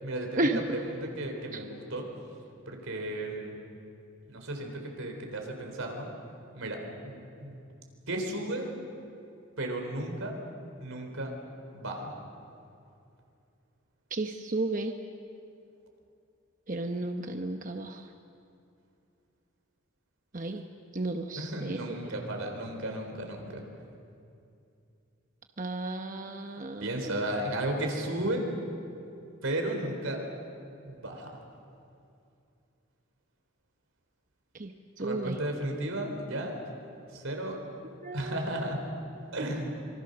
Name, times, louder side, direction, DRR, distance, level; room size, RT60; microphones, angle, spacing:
voice 1, 0.0-2.1 2.7-3.6 4.3-6.1 6.5-7.6 8.1-8.7 9.6-10.3 10.8-11.3 11.7-12.1 21.3-23.6 26.8-28.5 29.4-30.2 30.9-31.3 35.0-36.6 37.1-37.6 38.1-38.8 39.3-39.9, right 1 dB, 85° right, 3 dB, 4.0 m, -34 dB
voice 2, 14.1-14.9 16.7-18.0 20.3-20.6 20.9-21.8 25.6-26.8 34.6-34.7 35.0-35.4 38.0-38.3, right 2 dB, 40° right, 5 dB, 0.9 m, -32 dB
26.0 x 24.0 x 6.7 m, 2.6 s
head